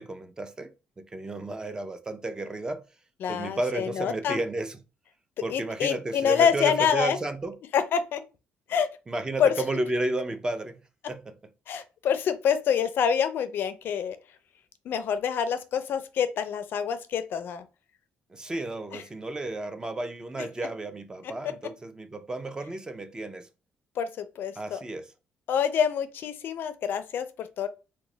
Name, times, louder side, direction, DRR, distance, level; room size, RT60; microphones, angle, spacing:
voice 1, 0.0-2.8 3.3-4.8 5.4-7.5 9.1-10.8 11.1-11.3 18.3-23.5 24.6-25.0, right 2 dB, 20° right, 0.4 m, -32 dB
voice 2, 3.2-4.4 5.5-7.2 7.7-8.2 8.7-8.9 9.4-9.5 11.7-14.2 14.9-17.6 18.9-19.0 21.4-21.5 24.0-24.8 25.5-27.7, left 7 dB, 65° left, 0.4 m, -26 dB
3.0 x 2.1 x 3.8 m
cardioid pair, 105°, 4 cm